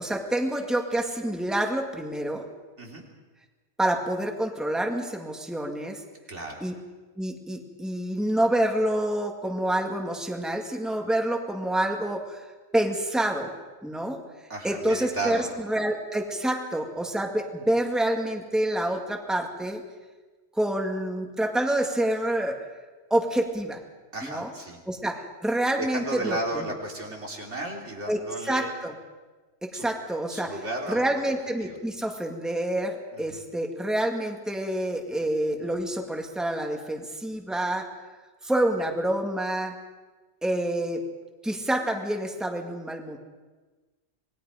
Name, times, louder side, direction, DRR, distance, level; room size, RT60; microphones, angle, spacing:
voice 1, 0.0-2.4 3.8-6.0 6.6-6.7 7.2-12.5 12.7-13.5 13.8-14.2 14.6-19.8 20.6-22.5 23.1-23.8 24.2-24.5 24.9-26.7 28.1-28.2 28.4-29.0 29.6-30.5 30.9-37.9 38.4-39.7 40.4-41.0 41.4-43.2, right 1 dB, ahead, 2 dB, 2.0 m, -27 dB
voice 2, 6.3-6.6 14.5-15.5 24.1-24.8 25.8-28.7 29.7-29.9 30.3-31.0 31.6-31.8 33.1-33.5, right 2 dB, 80° right, 0 dB, 3.4 m, -34 dB
27.0 x 20.5 x 5.1 m, 1.3 s
omnidirectional pair, 1.2 m